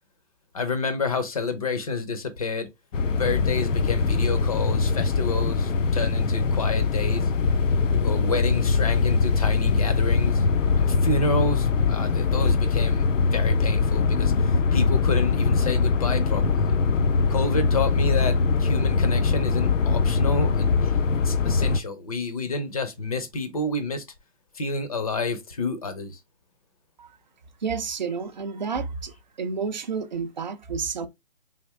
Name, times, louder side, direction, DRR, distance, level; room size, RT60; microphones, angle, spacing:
voice 1, 0.5-2.7 3.1-7.3 8.0-10.4 10.8-16.7 17.3-21.0 21.2-24.0 24.5-26.2, left 3 dB, 30° left, 0.6 m, -29 dB
sound 1, 2.9-21.8, left 4 dB, 75° left, 0.6 m, -22 dB
voice 2, 27.6-29.1 29.4-31.1, right 5 dB, 40° right, 0.5 m, -30 dB
3.5 x 2.5 x 3.1 m
figure-of-eight pair, 150°, 38 cm